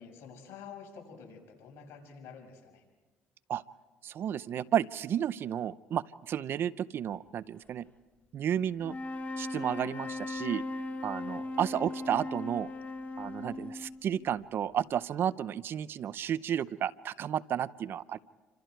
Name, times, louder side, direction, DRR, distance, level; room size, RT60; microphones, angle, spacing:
voice 1, 0.0-2.8 11.2-11.6, left 6 dB, 75° left, 3 dB, 6.1 m, -49 dB
voice 2, 4.0-7.9 8.3-9.0 9.4-10.6 11.0-12.7 13.2-18.2, right 9 dB, 60° right, 17 dB, 0.7 m, -32 dB
sound 1, 8.8-14.2, left 2 dB, 35° left, 2.5 m, -38 dB
29.0 x 26.0 x 4.6 m, 1.2 s
supercardioid pair, 80°, 4 cm